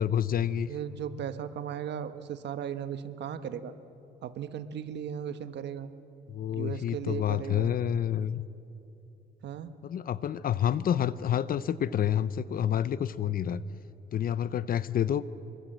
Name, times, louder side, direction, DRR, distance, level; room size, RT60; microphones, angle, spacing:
voice 1, 0.0-0.7 6.3-8.4 9.8-13.6 14.1-15.2, left 9 dB, 50° left, 16 dB, 0.7 m, -28 dB
voice 2, 0.7-3.7 4.2-5.9 6.5-7.7 9.4-9.7, right 9 dB, 65° right, 11 dB, 1.3 m, -36 dB
26.5 x 23.5 x 7.9 m, 2.8 s
cardioid pair, 115°, 19 cm